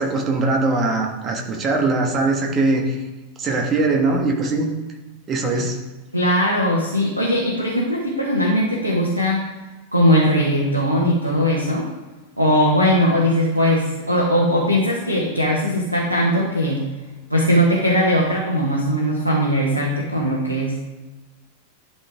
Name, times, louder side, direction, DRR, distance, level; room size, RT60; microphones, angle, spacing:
voice 1, 0.0-3.0 3.4-4.7 5.3-5.8, right 3 dB, 25° right, 1 dB, 1.6 m, -21 dB
voice 2, 6.1-9.4 9.9-11.9 12.4-16.8 17.3-20.8, equal, 85° right, -3 dB, 1.3 m, -19 dB
11.5 x 4.4 x 3.6 m, 1.2 s
figure-of-eight pair, 90°, 0 cm